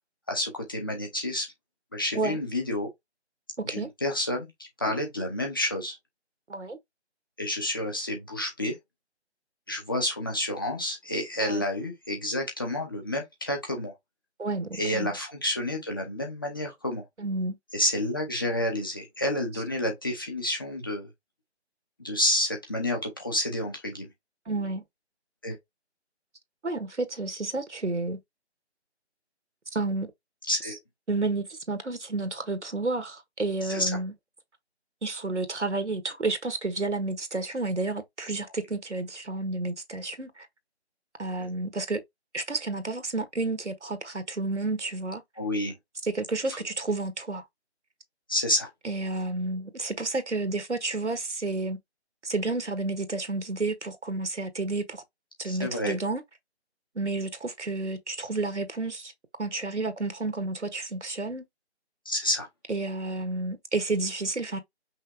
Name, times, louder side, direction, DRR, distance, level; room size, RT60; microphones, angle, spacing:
voice 1, 0.3-1.5 1.9-2.9 3.6-4.5 4.8-6.0 7.4-8.8 9.7-13.9 14.7-17.0 17.7-21.1 22.0-24.1 25.4-25.6 30.5-30.8 33.6-33.9 41.4-41.5 45.4-45.7 48.3-48.7 55.4-55.9 62.1-62.5, left 1 dB, 20° left, 0.8 m, -29 dB
voice 2, 14.4-15.1 17.2-17.5 24.5-24.8 26.6-28.2 29.7-30.1 30.6-30.8 31.1-34.1 35.0-40.5 41.2-42.0 42.3-45.2 46.0-47.4 48.8-51.8 52.2-55.0 55.4-56.2 56.9-59.1 59.4-61.4 62.7-64.6, right 3 dB, 85° right, 1.4 m, -31 dB
5.6 x 2.5 x 3.3 m
figure-of-eight pair, 155°, 34 cm